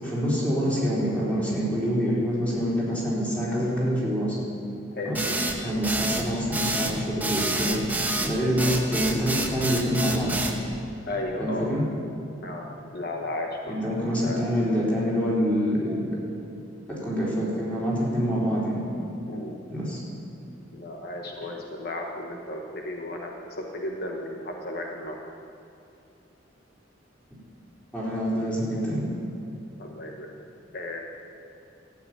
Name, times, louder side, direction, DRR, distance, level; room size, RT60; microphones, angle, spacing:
voice 1, 0.0-4.4 5.0-5.2 5.6-7.8 8.2-10.3 11.4-11.8 13.7-16.0 16.9-18.8 19.7-20.0 27.9-29.1, equal, 5° left, -7 dB, 4.1 m, -26 dB
voice 2, 4.9-5.6 8.2-8.7 11.1-11.7 12.4-12.7 12.9-14.5 19.3-19.6 20.7-25.2 29.8-30.3 30.7-31.0, left 1 dB, 55° left, 1 dB, 1.1 m, -35 dB
sound 1, 5.1-10.6, right 2 dB, 10° right, 1.1 m, -28 dB
14.0 x 7.7 x 9.5 m, 2.7 s
head